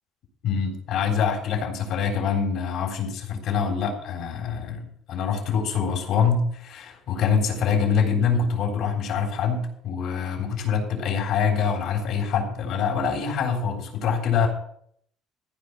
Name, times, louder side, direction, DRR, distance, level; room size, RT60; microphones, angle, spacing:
voice 1, 0.4-14.5, left 6 dB, 65° left, 2 dB, 3.7 m, -25 dB
15.0 x 5.3 x 8.3 m, 0.64 s
cardioid pair, 150°, 0 cm